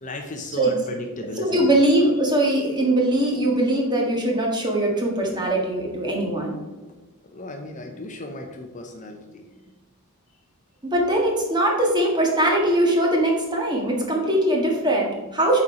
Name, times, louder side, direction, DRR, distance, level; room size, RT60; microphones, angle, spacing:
voice 1, 0.0-1.7 7.2-9.4, left 2 dB, 35° left, 4 dB, 0.7 m, -35 dB
voice 2, 1.4-6.5 10.9-15.6, right 1 dB, 20° right, -1 dB, 1.5 m, -21 dB
7.8 x 4.4 x 4.9 m, 1.2 s
head